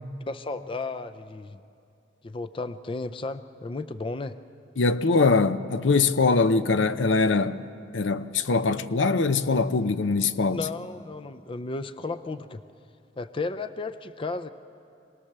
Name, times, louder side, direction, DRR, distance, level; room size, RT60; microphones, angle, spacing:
voice 1, 0.3-1.6 2.2-4.4 10.5-12.6 13.2-14.5, left 3 dB, 30° left, 0.5 m, -34 dB
voice 2, 4.8-7.6 7.9-10.6, left 4 dB, 80° left, 0.7 m, -22 dB
26.0 x 19.0 x 6.7 m
head